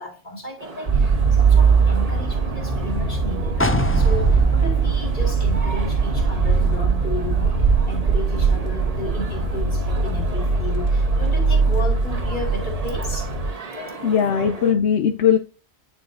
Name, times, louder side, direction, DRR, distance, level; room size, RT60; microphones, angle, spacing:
voice 1, 0.0-13.3, left 1 dB, 45° left, 2.5 m, -33 dB
sound 1, 0.6-14.7, right 4 dB, 35° right, 1.1 m, -37 dB
sound 2, 0.9-13.5, right 4 dB, 65° right, 1.5 m, -20 dB
sound 3, 3.6-7.3 7.7-7.8, left 1 dB, 20° left, 0.4 m, -28 dB
voice 2, 13.8-15.4, left 8 dB, 85° left, 0.9 m, -19 dB
9.4 x 4.9 x 2.6 m
omnidirectional pair, 1.1 m